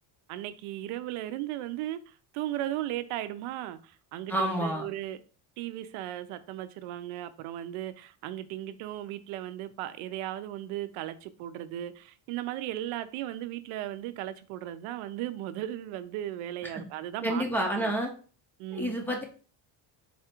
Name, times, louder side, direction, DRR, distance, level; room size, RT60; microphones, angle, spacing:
voice 1, 0.3-5.2 5.6-17.9 18.6-19.0, right 13 dB, 75° right, 0.6 m, -36 dB
voice 2, 4.3-4.8 16.6-16.8 17.2-18.1 18.7-19.2, right 1 dB, 5° left, 0.5 m, -29 dB
4.2 x 2.4 x 4.3 m
cardioid pair, 160°, 49 cm